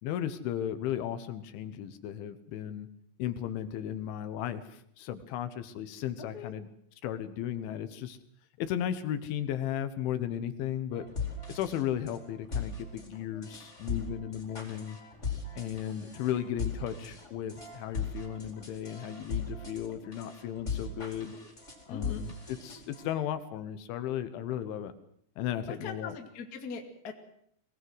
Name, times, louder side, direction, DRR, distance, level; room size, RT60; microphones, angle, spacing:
voice 1, 0.0-2.9 3.2-6.7 7.0-8.2 8.6-11.0 11.5-15.0 15.6-21.3 21.9-24.9 25.4-26.2, left 10 dB, 75° left, 11 dB, 3.5 m, -35 dB
voice 2, 6.2-6.5 21.9-22.2 25.7-27.1, left 5 dB, 30° left, 4 dB, 1.8 m, -41 dB
sound 1, 10.9-23.2, left 5 dB, 15° left, 4.4 m, -39 dB
23.0 x 18.5 x 7.9 m, 0.67 s
omnidirectional pair, 5.7 m